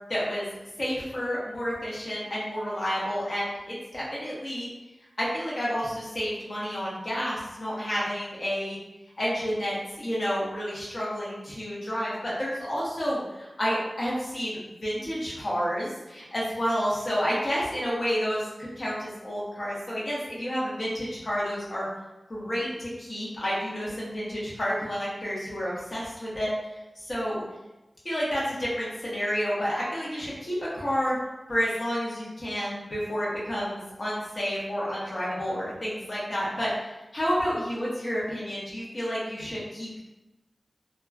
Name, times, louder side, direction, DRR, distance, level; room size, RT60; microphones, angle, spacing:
voice 1, 0.1-0.5 0.8-4.7 5.2-8.8 9.2-21.9 22.3-26.5 26.9-27.4 28.0-31.2 31.5-40.0, equal, 60° left, -7 dB, 1.0 m, -30 dB
2.9 x 2.4 x 2.3 m, 1.0 s
wide cardioid pair, 45°, 0 cm